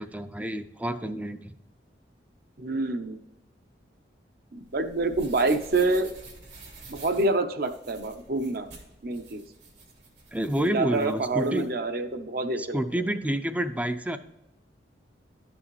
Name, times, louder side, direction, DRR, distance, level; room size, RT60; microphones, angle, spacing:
voice 1, 0.0-1.5 10.3-11.7 12.6-14.2, equal, 10° right, 10 dB, 0.4 m, -29 dB
voice 2, 2.6-3.2 4.5-6.1 6.9-8.7 9.0-9.4 10.7-12.8, right 2 dB, 55° right, 8 dB, 0.8 m, -27 dB
sound 1, 4.6-11.7, right 3 dB, 75° right, 2.8 m, -49 dB
12.0 x 6.2 x 3.1 m, 0.95 s
head